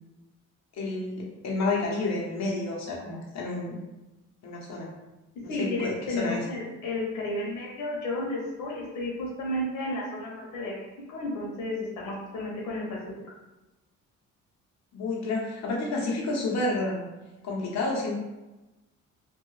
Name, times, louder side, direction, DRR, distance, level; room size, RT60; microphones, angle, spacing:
voice 1, 0.7-3.8 4.4-4.9 5.6-6.4 14.9-17.1 17.4-18.1, left 2 dB, 60° left, -3 dB, 1.0 m, -30 dB
voice 2, 5.5-13.0, left 1 dB, 85° left, -3 dB, 1.0 m, -32 dB
2.7 x 2.6 x 3.1 m, 1.1 s
cardioid pair, 90°, 30 cm